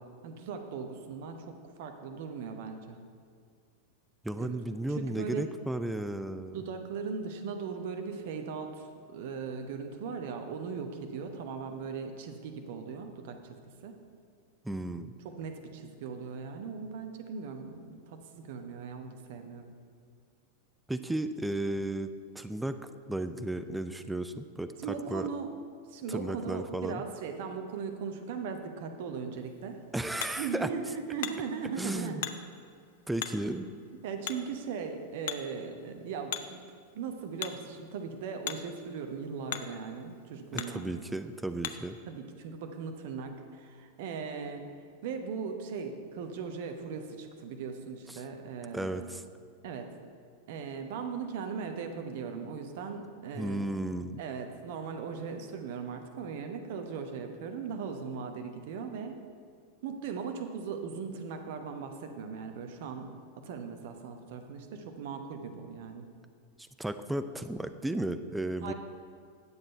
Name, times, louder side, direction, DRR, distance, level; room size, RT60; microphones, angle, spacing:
voice 1, 0.0-3.0 4.3-4.6 4.9-5.5 6.5-13.6 13.8-13.9 15.2-19.7 24.8-25.5 25.9-29.8 30.4-32.2 34.0-36.6 36.9-40.9 42.1-44.6 45.0-49.1 49.6-49.9 50.5-53.7 54.2-59.2 59.8-63.1 63.4-66.1 68.6-68.7, right 5 dB, 50° right, 6 dB, 0.9 m, -38 dB
voice 2, 4.2-6.6 14.6-15.1 20.9-22.8 23.1-25.3 26.1-27.0 29.9-30.7 31.8-32.2 33.1-33.7 40.5-42.0 48.1-48.2 48.7-49.2 53.4-54.2 66.8-68.7, right 1 dB, 5° right, 10 dB, 0.4 m, -34 dB
Hammer, 29.3-42.0, left 10 dB, 55° left, 0.5 m, -43 dB
9.7 x 7.6 x 4.4 m, 2.3 s
figure-of-eight pair, 90°, 0 cm